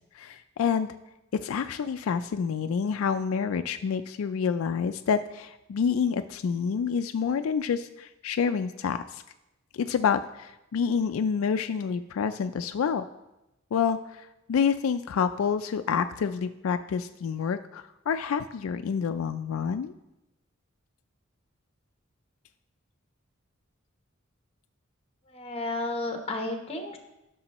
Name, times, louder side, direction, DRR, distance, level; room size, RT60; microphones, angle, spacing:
voice 1, 0.1-0.9 1.3-9.2 9.7-13.1 13.7-19.9, left 6 dB, 80° left, 9 dB, 0.3 m, -28 dB
voice 2, 25.3-27.0, left 2 dB, 30° left, 4 dB, 1.0 m, -32 dB
11.5 x 6.2 x 3.0 m, 0.94 s
head